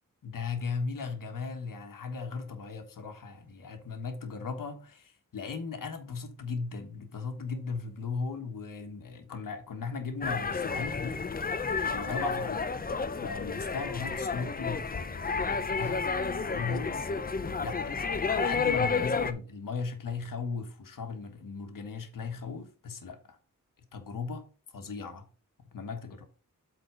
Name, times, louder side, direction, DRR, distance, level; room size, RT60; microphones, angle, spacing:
voice 1, 0.2-11.6 11.9-12.7 13.2-17.0 17.6-23.4 23.9-24.5 24.7-25.2 25.7-26.2, left 4 dB, 85° left, 1.5 m, -37 dB
sound 1, 10.2-19.3, left 4 dB, 30° left, 0.6 m, -31 dB
7.9 x 4.0 x 5.0 m
wide cardioid pair, 160°, 32 cm